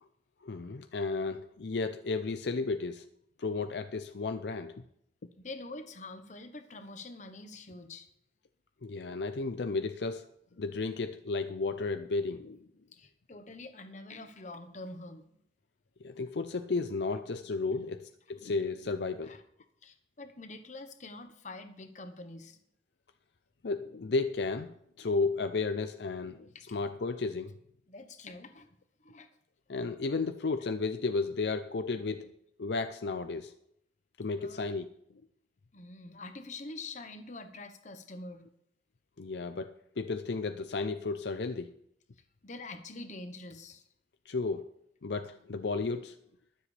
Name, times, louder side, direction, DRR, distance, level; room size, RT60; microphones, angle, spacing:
voice 1, 0.4-3.0 3.4-4.8 8.8-10.3 10.6-12.7 16.0-19.3 23.6-27.5 29.7-32.3 32.6-33.6 34.2-34.9 39.2-41.7 44.3-44.7 45.0-46.2, left 3 dB, 70° left, 9 dB, 0.5 m, -33 dB
voice 2, 5.4-8.1 12.9-15.4 19.2-19.4 19.8-22.6 26.5-26.8 27.9-28.7 29.0-29.3 34.4-34.7 35.7-38.4 42.4-43.8, left 2 dB, 45° left, 8 dB, 1.1 m, -45 dB
22.5 x 7.6 x 3.4 m, 0.74 s
head